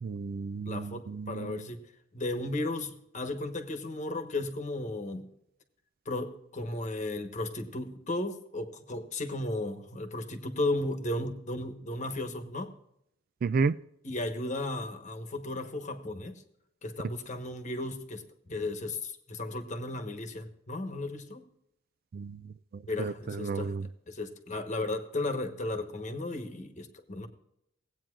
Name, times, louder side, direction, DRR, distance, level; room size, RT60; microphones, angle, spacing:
voice 1, 0.0-1.6 13.4-13.8 22.1-22.4 22.7-23.9, right 4 dB, 50° right, 0.3 m, -32 dB
voice 2, 0.7-1.8 2.1-5.3 6.1-12.7 14.0-16.4 16.8-18.2 18.5-21.4 22.9-23.8 24.1-27.3, left 2 dB, 40° left, 1.2 m, -35 dB
17.5 x 8.9 x 2.5 m
head